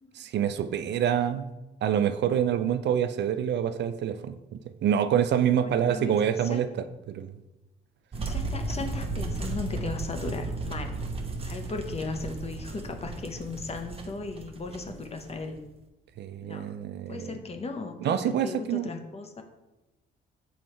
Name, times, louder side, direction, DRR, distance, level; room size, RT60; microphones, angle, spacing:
voice 1, 0.1-1.5 1.8-6.7 7.1-7.3 16.2-17.4 18.0-18.9, right 9 dB, 60° right, 11 dB, 0.4 m, -26 dB
voice 2, 5.6-6.2 6.4-6.7 8.2-10.9 11.3-15.6 16.4-16.7 17.1-19.4, left 3 dB, 30° left, 6 dB, 0.8 m, -37 dB
sound 1, 8.1-15.7, right 2 dB, 30° right, 0.9 m, -35 dB
7.3 x 3.1 x 4.4 m, 1.0 s
cardioid pair, 90°, 20 cm